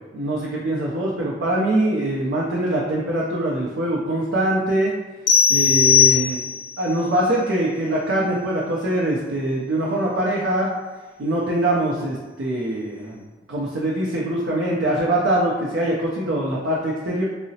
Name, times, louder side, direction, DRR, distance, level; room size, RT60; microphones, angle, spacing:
voice 1, 0.1-4.9 5.5-6.5 6.8-10.7 11.2-13.2 13.5-17.2, right 1 dB, 85° right, -4 dB, 0.5 m, -23 dB
sound 1, 5.3-6.8, left 8 dB, 65° left, 0.5 m, -17 dB
3.7 x 2.0 x 2.7 m, 1.2 s
head